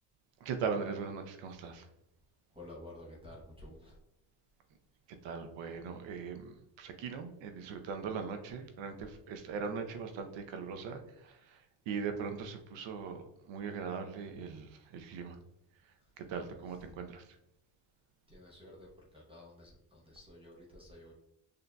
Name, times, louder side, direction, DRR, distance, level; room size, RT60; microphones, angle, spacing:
voice 1, 0.4-1.8 5.2-11.6 11.9-15.4 16.2-17.2, right 5 dB, 65° right, 6 dB, 0.7 m, -40 dB
voice 2, 2.5-4.0 16.0-17.0 18.3-21.1, left 1 dB, 10° right, -3 dB, 0.8 m, -52 dB
6.6 x 2.7 x 2.2 m, 0.81 s
cardioid pair, 125°, 48 cm